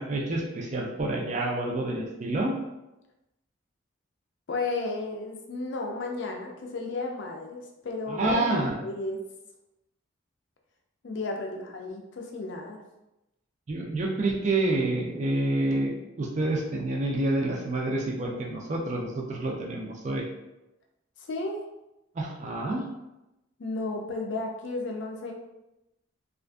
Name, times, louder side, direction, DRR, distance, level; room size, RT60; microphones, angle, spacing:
voice 1, 0.0-2.6 8.1-8.8 13.7-20.2 22.2-22.9, right 2 dB, 35° right, 0 dB, 0.4 m, -28 dB
voice 2, 4.5-9.2 11.0-12.8 21.2-21.6 23.6-25.3, left 3 dB, 65° left, 2 dB, 0.4 m, -33 dB
2.5 x 2.4 x 2.2 m, 0.94 s
head